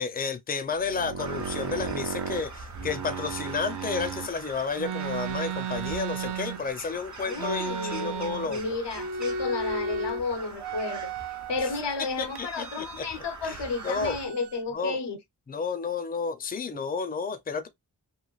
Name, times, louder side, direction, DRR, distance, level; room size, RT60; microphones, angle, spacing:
voice 1, 0.0-8.6 12.2-13.0 13.4-14.2 14.7-15.0 15.5-17.7, left 5 dB, 20° left, 0.5 m, -31 dB
sound 1, 0.7-4.3 4.8-6.9 7.4-8.6 8.9-10.2 10.6-11.8 12.3-13.2 13.4-14.6, right 5 dB, 75° right, 0.5 m, -35 dB
Crow, 1.2-14.3, right 3 dB, 45° right, 0.8 m, -43 dB
voice 2, 7.2-11.1 11.5-15.2, left 4 dB, 80° left, 0.7 m, -32 dB
3.1 x 2.5 x 2.4 m
wide cardioid pair, 85°, 41 cm